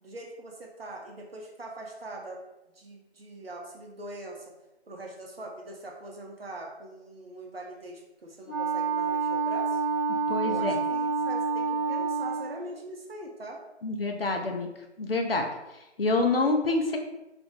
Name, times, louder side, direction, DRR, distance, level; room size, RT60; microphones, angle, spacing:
voice 1, 0.0-2.4 2.8-4.4 4.9-9.8 10.4-13.6, right 1 dB, 55° right, 0 dB, 0.7 m, -42 dB
Wind instrument woodwind instrument, 8.5-12.7, right 5 dB, 15° right, 0.8 m, -28 dB
voice 2, 10.3-10.8 13.8-14.7 15.0-15.5 16.0-17.0, left 3 dB, 55° left, 3 dB, 0.4 m, -26 dB
2.5 x 2.0 x 3.6 m, 0.93 s
figure-of-eight pair, 160°, 35 cm